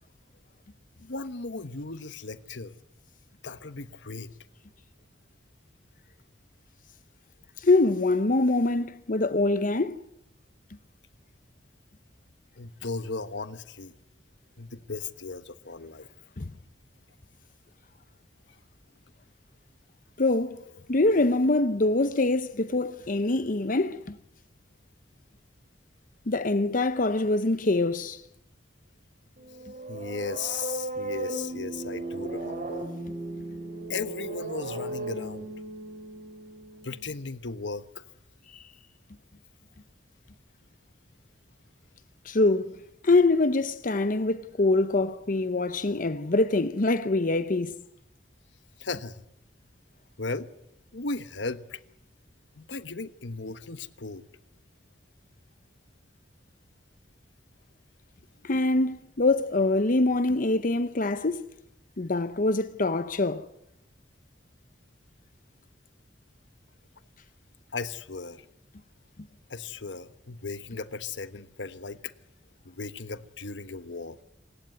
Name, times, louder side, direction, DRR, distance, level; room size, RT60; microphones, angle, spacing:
voice 1, 1.0-2.7 3.4-4.3 12.6-13.9 14.6-16.1 29.9-32.9 33.9-35.5 36.8-38.0 48.8-49.2 50.2-50.5 50.9-51.8 52.6-54.2 67.7-68.4 69.5-72.1 72.6-74.2, left 4 dB, 75° left, 1.3 m, -36 dB
voice 2, 7.6-10.0 16.4-16.5 20.2-24.2 26.3-28.2 38.5-38.6 42.2-42.8 43.0-47.7 58.4-61.5 62.0-63.5, left 2 dB, 50° left, 0.8 m, -24 dB
sound 1, 29.4-37.1, right 2 dB, 45° right, 5.5 m, -36 dB
27.5 x 16.5 x 9.4 m
head